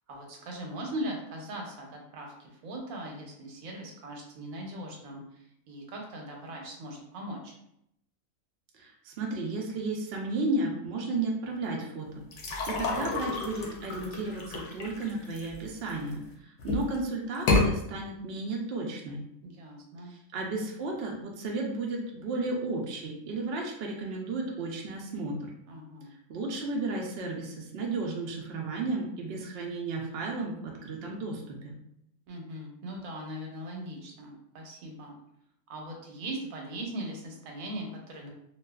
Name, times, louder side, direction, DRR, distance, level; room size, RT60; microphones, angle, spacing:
voice 1, 0.1-7.6 19.4-20.1 25.7-26.1 32.3-35.2 35.7-38.3, right 1 dB, 90° right, 0 dB, 1.1 m, -40 dB
voice 2, 8.7-12.2 12.7-19.2 20.1-25.5 26.3-31.7, right 2 dB, 65° right, -1 dB, 0.6 m, -33 dB
sound 1, 12.3-16.1 16.6-17.0 17.3-17.7, left 3 dB, 65° left, 0.8 m, -29 dB
2.7 x 2.3 x 2.2 m, 0.76 s
omnidirectional pair, 1.4 m